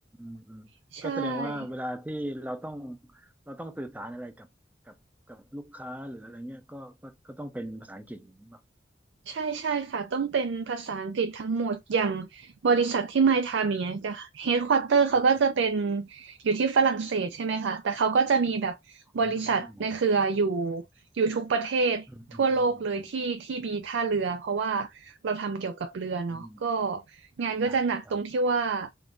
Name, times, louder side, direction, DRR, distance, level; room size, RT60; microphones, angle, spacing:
voice 1, 0.2-0.7 1.0-4.5 4.9-5.0 5.3-8.6 19.2-19.9 22.1-23.1 26.3-26.6 27.7-27.8 28.1-28.2, equal, 10° right, 0.5 m, -39 dB
voice 2, 0.9-1.5 9.3-20.8 21.1-28.9, right 5 dB, 90° right, 0.4 m, -27 dB
3.6 x 2.5 x 2.3 m
head